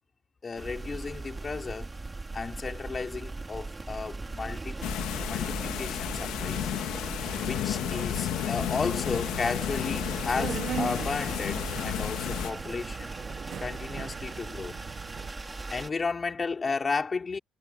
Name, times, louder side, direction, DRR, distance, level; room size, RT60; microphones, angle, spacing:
voice 1, 0.4-1.9 2.3-4.8 5.3-6.7 7.4-13.1 13.6-14.8 15.7-17.4, left 4 dB, 25° left, 5.0 m, -34 dB
sound 1, 0.5-15.9, right 3 dB, 15° right, 2.9 m, -38 dB
sound 2, 4.8-12.5, left 13 dB, 75° left, 2.6 m, -32 dB
Subway metro underground, 7.2-15.3, right 9 dB, 45° right, 1.2 m, -41 dB
cardioid pair, 135°, 0 cm